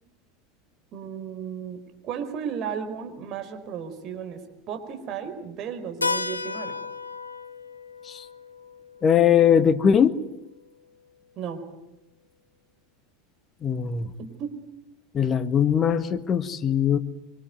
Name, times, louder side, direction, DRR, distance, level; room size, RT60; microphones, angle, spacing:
voice 1, 0.9-4.4 4.7-6.8 11.4-11.6 14.2-14.6, right 7 dB, 45° right, 6 dB, 4.7 m, -34 dB
Keyboard (musical), 6.0-10.5, left 4 dB, 90° left, 0.9 m, -34 dB
voice 2, 9.0-10.2 13.6-14.1 15.1-17.0, left 8 dB, 30° left, 12 dB, 1.8 m, -20 dB
25.0 x 25.0 x 9.4 m, 0.93 s
figure-of-eight pair, 80°, 0 cm